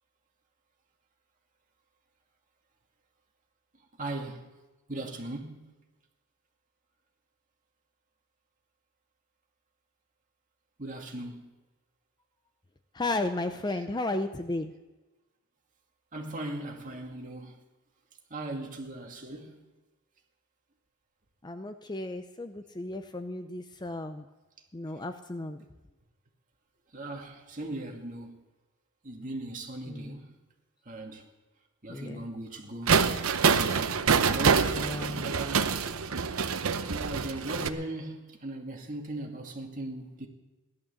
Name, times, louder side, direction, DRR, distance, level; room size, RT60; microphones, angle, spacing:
voice 1, 4.0-4.5 4.9-5.7 10.8-11.5 16.1-17.6 18.3-19.7 26.9-28.4 29.0-30.3 30.9-31.3 31.8-33.0 34.3-34.8 35.2-35.9 36.9-40.3, right 2 dB, 40° right, 2.3 m, -38 dB
voice 2, 12.9-14.7 21.4-24.2 24.7-25.6 29.9-30.2 31.9-32.3 34.7-35.3, left 2 dB, 20° left, 0.6 m, -34 dB
sound 1, 32.9-37.7, right 5 dB, 85° right, 0.8 m, -26 dB
16.5 x 11.5 x 7.1 m
head